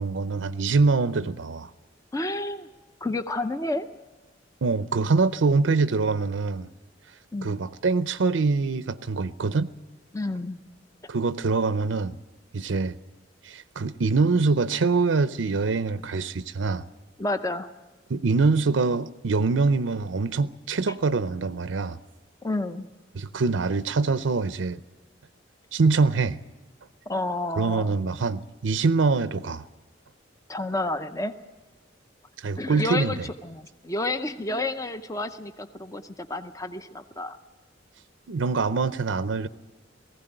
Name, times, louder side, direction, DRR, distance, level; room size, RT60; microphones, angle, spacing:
voice 1, 0.0-1.7 4.6-6.7 7.4-9.7 11.1-12.2 12.5-13.0 13.4-16.8 18.1-22.0 23.1-24.8 25.7-26.4 27.6-29.6 32.4-33.3 38.3-39.5, right 4 dB, 80° right, 0.6 m, -24 dB
voice 2, 2.1-2.7 3.0-3.9 7.3-7.6 10.1-10.6 17.2-17.7 22.4-22.9 27.1-28.0 30.5-31.3 32.6-37.4, left 2 dB, 15° left, 0.6 m, -30 dB
18.5 x 15.5 x 9.0 m
head